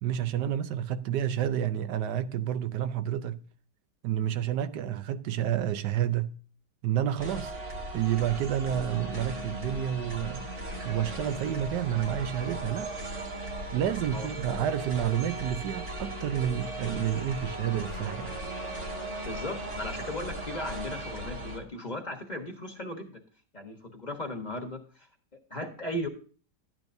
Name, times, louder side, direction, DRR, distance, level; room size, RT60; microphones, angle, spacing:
voice 1, 0.0-3.4 4.0-6.4 6.8-7.5 7.9-10.5 10.8-12.9 13.7-18.3, right 10 dB, 85° right, 1.3 m, -29 dB
sound 1, 7.2-21.6, right 1 dB, 45° right, 2.0 m, -37 dB
voice 2, 19.2-23.2 23.5-24.8 25.5-26.1, left 1 dB, 30° left, 1.2 m, -36 dB
12.0 x 9.1 x 2.6 m
omnidirectional pair, 1.8 m